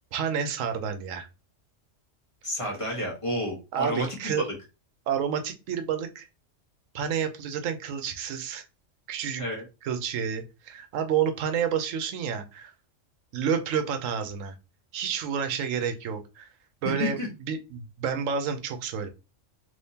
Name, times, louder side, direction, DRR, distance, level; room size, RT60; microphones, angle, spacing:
voice 1, 0.1-1.3 3.7-4.5 5.1-6.3 6.9-8.6 9.1-9.4 9.8-12.7 13.3-14.5 14.9-16.5 16.8-19.1, right 7 dB, 90° right, 7 dB, 1.0 m, -29 dB
voice 2, 2.4-4.5 9.4-9.6 16.8-17.3, left 1 dB, 25° left, -3 dB, 1.2 m, -30 dB
3.5 x 3.0 x 2.7 m, 0.29 s
omnidirectional pair, 1.3 m